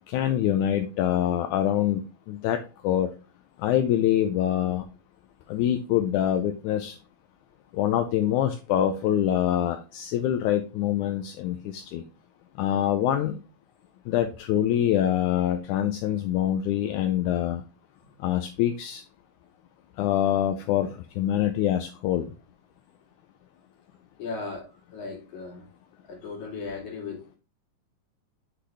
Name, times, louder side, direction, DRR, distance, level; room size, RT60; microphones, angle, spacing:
voice 1, 0.1-3.1 3.6-4.9 5.5-7.0 7.7-12.0 12.6-13.4 14.1-17.6 18.2-19.0 20.0-22.3, left 11 dB, 80° left, 1.9 m, -25 dB
voice 2, 24.2-25.7 26.0-27.4, left 4 dB, 65° left, 3.5 m, -37 dB
8.3 x 3.9 x 3.2 m
omnidirectional pair, 3.7 m